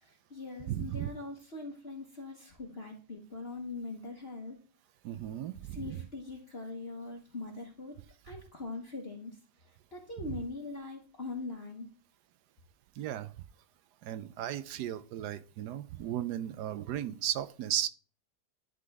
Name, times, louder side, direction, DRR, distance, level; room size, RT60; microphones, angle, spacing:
voice 1, 0.0-4.6 5.6-7.9 8.2-9.4 9.9-11.9, left 3 dB, 40° left, 0 dB, 1.3 m, -42 dB
voice 2, 0.7-1.1 5.0-6.0 13.0-13.3 14.0-17.9, right 11 dB, 75° right, 12 dB, 1.1 m, -35 dB
11.0 x 3.8 x 3.4 m, 0.40 s
omnidirectional pair, 1.8 m